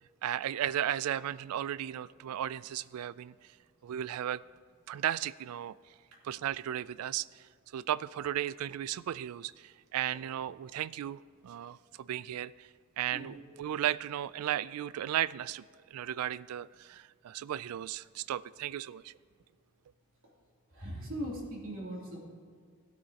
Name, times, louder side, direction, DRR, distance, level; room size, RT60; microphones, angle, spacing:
voice 1, 0.2-3.3 3.8-4.4 4.9-5.7 6.2-7.4 7.7-12.7 13.0-15.6 15.9-19.1, right 11 dB, 85° right, 18 dB, 0.3 m, -35 dB
voice 2, 20.7-22.2, equal, 65° right, -4 dB, 3.0 m, -39 dB
16.5 x 8.9 x 2.9 m, 2.1 s
head